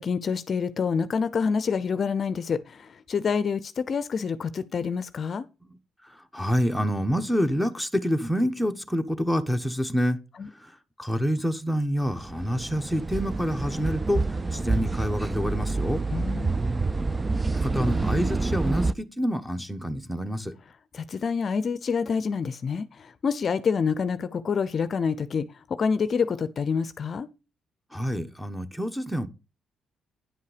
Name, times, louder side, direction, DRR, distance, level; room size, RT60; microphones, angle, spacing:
voice 1, 0.0-5.5 10.4-10.5 16.1-16.6 20.9-27.3, left 6 dB, 50° left, 0.6 m, -27 dB
voice 2, 6.1-10.2 10.5-10.7 11.0-14.2 14.5-16.0 17.5-20.5 27.9-29.3, equal, ahead, 1.0 m, -27 dB
sound 1, 12.1-18.9, right 3 dB, 25° right, 0.4 m, -27 dB
10.0 x 5.6 x 4.9 m
cardioid pair, 90°, 0 cm